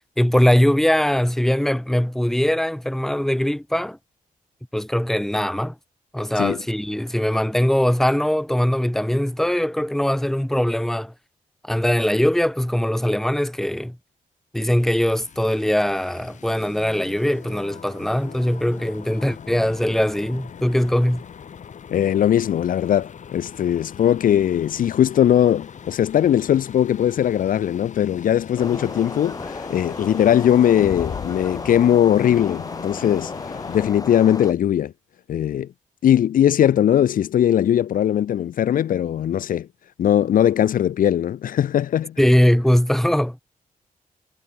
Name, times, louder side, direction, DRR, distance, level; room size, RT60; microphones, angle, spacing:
voice 1, 0.2-4.0 4.7-5.7 6.1-11.1 11.6-14.0 14.5-21.2 42.2-43.4, equal, 5° left, 1.0 m, -21 dB
sound 1, 14.8-33.9, left 7 dB, 60° left, 1.4 m, -40 dB
voice 2, 21.9-34.9 35.3-35.7 36.0-39.7 40.0-42.2, left 10 dB, 75° left, 0.6 m, -19 dB
sound 2, 28.6-34.5, left 3 dB, 25° left, 1.6 m, -34 dB
cardioid pair, 100°, 14 cm